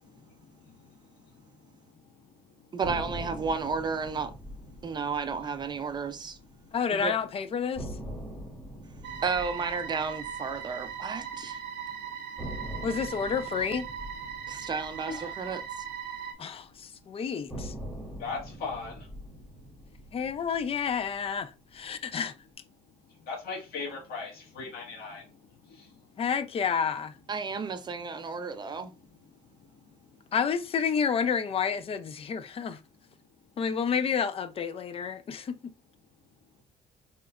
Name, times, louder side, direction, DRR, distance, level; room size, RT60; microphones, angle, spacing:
voice 1, 0.0-2.7 4.7-5.0 6.6-6.8 8.3-9.2 11.4-12.9 14.4-14.7 15.0-15.4 18.2-19.1 23.0-26.2 28.4-30.2, left 4 dB, 65° left, 1.6 m, -43 dB
voice 2, 2.7-4.3 4.8-6.4 6.9-7.1 9.2-11.6 14.5-15.8 27.3-28.9, right 5 dB, 25° right, 0.5 m, -32 dB
sound 1, 2.8-6.9 7.2-7.3 7.7-11.8 12.4-16.7 17.5-21.9, equal, 10° left, 1.9 m, -43 dB
voice 3, 6.7-8.0 12.8-13.9 16.4-17.7 20.1-22.3 26.2-27.1 30.3-32.8 33.6-35.6, left 6 dB, 35° left, 0.4 m, -30 dB
sound 2, 9.0-16.3, right 8 dB, 80° right, 0.5 m, -39 dB
3.2 x 2.9 x 2.4 m
cardioid pair, 110°, 17 cm